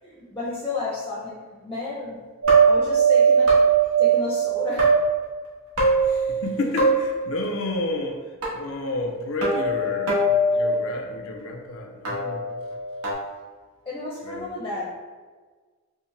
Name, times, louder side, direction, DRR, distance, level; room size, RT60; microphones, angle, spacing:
voice 1, 0.0-2.2 2.6-3.5 4.0-4.9 13.9-14.9, left 3 dB, 15° left, -5 dB, 0.6 m, -32 dB
sound 1, 2.4-4.9 5.8-6.5 6.8-7.2 8.4-8.5 9.4-10.7 12.1-13.1, right 4 dB, 80° right, 1.2 m, -20 dB
voice 2, 6.1-8.3 8.5-12.5 14.2-14.5, left 2 dB, 60° left, 2 dB, 0.5 m, -30 dB
5.3 x 2.1 x 3.2 m, 1.4 s
head